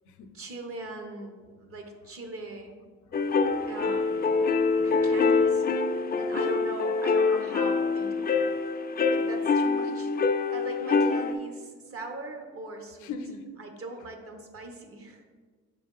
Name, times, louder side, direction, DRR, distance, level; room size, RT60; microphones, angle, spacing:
voice 1, 0.3-2.7 3.7-4.3 4.8-5.7 6.1-8.5 9.1-13.1 13.6-15.2, right 2 dB, 50° right, 4 dB, 1.1 m, -40 dB
voice 2, 3.1-3.7 4.3-5.5 5.8-6.6 13.0-13.4, left 5 dB, 80° left, 8 dB, 0.6 m, -43 dB
sound 1, 3.1-11.3, left 4 dB, 30° left, 0.4 m, -25 dB
6.6 x 3.4 x 5.3 m, 1.5 s
cardioid pair, 90°, 30 cm